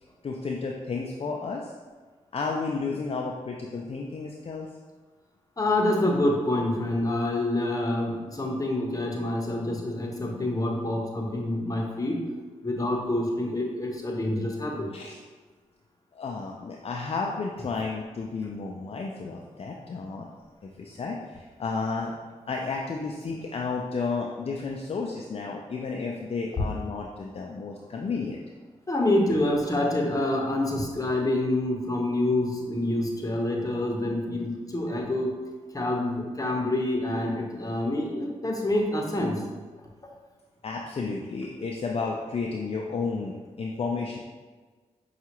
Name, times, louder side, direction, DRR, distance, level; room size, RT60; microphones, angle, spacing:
voice 1, 0.2-1.7 2.3-4.7 14.9-15.2 16.1-20.3 20.8-22.1 22.5-28.4 40.6-44.2, left 4 dB, 50° left, 0 dB, 0.4 m, -32 dB
voice 2, 5.6-12.2 12.6-14.9 28.9-35.3 35.7-39.4, left 1 dB, 25° left, 0 dB, 0.9 m, -27 dB
5.5 x 2.4 x 2.9 m, 1.4 s
cardioid pair, 45°, 13 cm